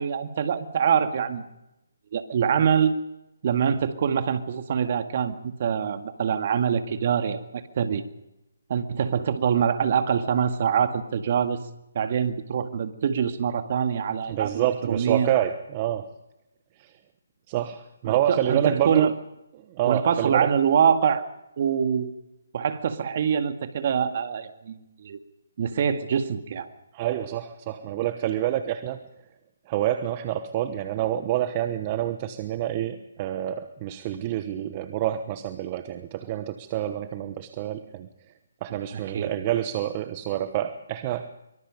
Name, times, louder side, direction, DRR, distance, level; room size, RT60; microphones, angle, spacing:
voice 1, 0.0-1.4 2.1-2.9 3.4-8.0 8.7-11.6 11.9-15.3 18.0-19.1 19.8-21.2 21.6-22.1 22.5-25.2 25.6-26.7 38.7-39.3, right 7 dB, 45° right, 8 dB, 2.0 m, -24 dB
voice 2, 14.3-16.1 16.8-16.9 17.5-19.1 19.7-20.5 26.9-29.1 29.7-38.1 38.6-41.3, right 12 dB, 30° right, 11 dB, 1.1 m, -27 dB
24.5 x 24.0 x 5.3 m, 0.91 s
figure-of-eight pair, 150°, 0 cm